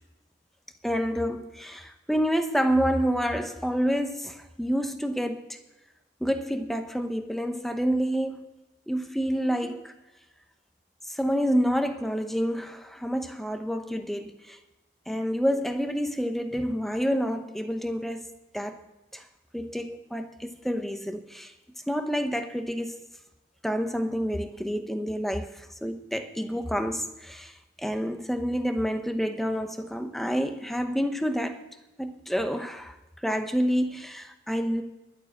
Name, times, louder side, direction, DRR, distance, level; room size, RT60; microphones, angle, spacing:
voice 1, 0.8-5.5 6.2-8.5 8.9-9.9 11.0-14.6 15.1-18.8 19.1-19.2 19.5-21.5 21.9-23.0 23.6-31.7 32.0-33.0 33.2-34.8, equal, ahead, 0.8 m, -28 dB
11.5 x 7.2 x 9.7 m
head